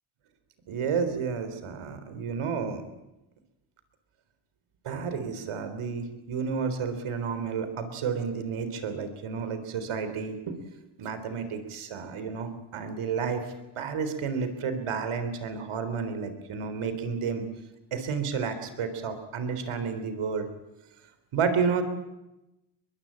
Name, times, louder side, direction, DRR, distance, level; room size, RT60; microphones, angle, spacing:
voice 1, 0.7-2.8 4.9-10.6 11.0-13.5 13.8-17.4 17.9-20.5 21.3-21.8, right 6 dB, 75° right, 10 dB, 3.8 m, -31 dB
22.5 x 22.0 x 8.8 m, 0.95 s
cardioid pair, 75°, 50 cm